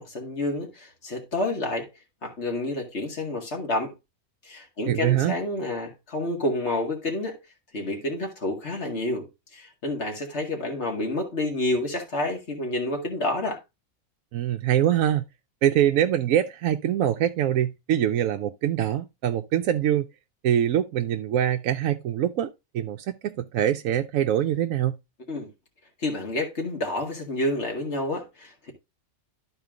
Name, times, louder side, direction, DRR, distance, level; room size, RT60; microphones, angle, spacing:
voice 1, 0.0-1.9 2.2-3.9 4.4-7.4 7.7-9.3 9.5-13.6 25.3-25.5 26.0-28.7, left 2 dB, 50° left, 2.3 m, -29 dB
voice 2, 4.9-5.4 14.3-15.2 15.6-20.1 20.4-25.0, right 11 dB, 70° right, 1.0 m, -24 dB
12.0 x 4.4 x 3.7 m
omnidirectional pair, 1.5 m